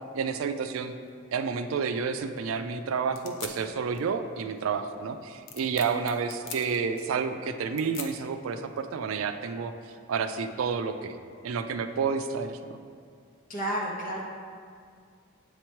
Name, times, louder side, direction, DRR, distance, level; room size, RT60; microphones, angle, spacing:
voice 1, 0.1-0.9 1.3-9.7 10.1-11.1 11.4-12.8, right 5 dB, 85° right, 8 dB, 0.4 m, -30 dB
sound 1, 1.0-9.1, left 6 dB, 65° left, 0.6 m, -46 dB
voice 2, 13.5-14.2, right 1 dB, 40° left, -3 dB, 1.1 m, -31 dB
7.9 x 3.0 x 4.5 m, 2.2 s
head